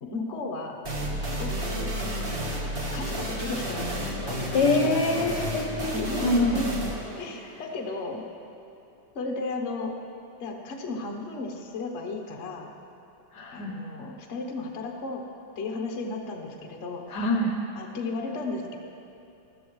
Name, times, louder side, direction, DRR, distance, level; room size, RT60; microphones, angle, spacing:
voice 1, 0.0-0.9 1.4-2.0 2.6-5.3 5.9-6.8 7.2-8.2 9.1-9.9 10.4-12.7 13.5-15.3 15.5-17.1 17.7-18.8, left 3 dB, 45° left, 1 dB, 1.0 m, -34 dB
sound 1, 0.8-8.3, right 1 dB, 30° right, 1.2 m, -32 dB
voice 2, 4.5-6.6 13.3-13.8 17.1-17.5, left 2 dB, 60° left, 2 dB, 1.3 m, -25 dB
14.5 x 13.5 x 3.2 m, 2.7 s
omnidirectional pair, 2.2 m